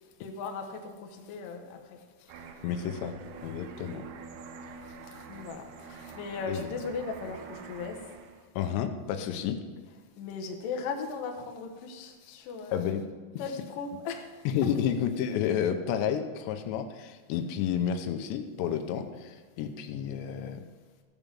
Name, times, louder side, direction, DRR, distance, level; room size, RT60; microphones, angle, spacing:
voice 1, 0.2-2.3 4.9-8.0 10.2-12.9 13.4-14.3, left 4 dB, 70° left, 3 dB, 2.4 m, -38 dB
sound 1, 2.3-8.5, right 6 dB, 75° right, 2.6 m, -46 dB
voice 2, 2.6-4.1 6.5-6.7 8.6-9.6 12.7-13.1 14.5-20.6, left 8 dB, 90° left, 7 dB, 3.0 m, -31 dB
15.0 x 5.3 x 7.4 m, 1.4 s
omnidirectional pair, 4.9 m